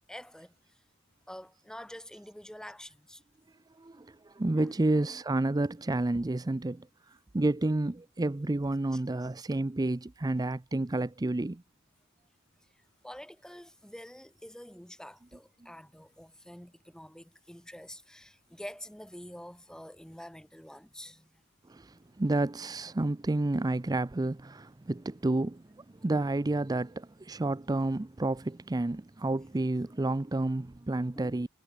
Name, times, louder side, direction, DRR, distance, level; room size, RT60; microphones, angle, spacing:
voice 1, 0.1-0.5 1.3-3.2 4.5-4.8 8.9-9.0 12.7-21.4 31.2-31.3, equal, 5° left, 2.1 m, -47 dB
voice 2, 3.8-6.9 7.3-11.6 21.7-31.5, right 2 dB, 20° right, 0.5 m, -30 dB
head